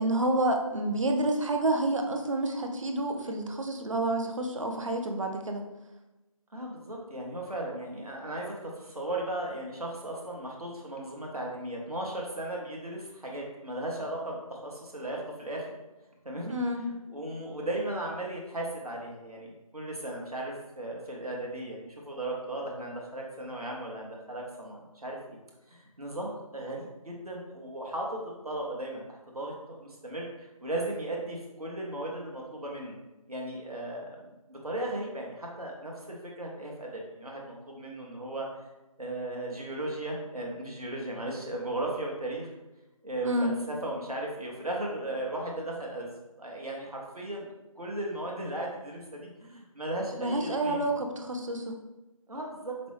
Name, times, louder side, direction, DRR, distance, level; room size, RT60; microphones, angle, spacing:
voice 1, 0.0-5.6 16.5-16.8 43.2-43.5 50.2-51.8, right 1 dB, 60° right, 4 dB, 0.6 m, -29 dB
voice 2, 6.5-15.7 16.2-25.4 25.7-33.0 33.3-34.1 34.5-38.5 39.0-42.5 43.0-46.1 46.4-47.5 47.8-50.9 52.3-52.7, right 1 dB, 85° right, -1 dB, 1.0 m, -36 dB
5.2 x 2.1 x 3.1 m, 1.0 s
figure-of-eight pair, 155°, 19 cm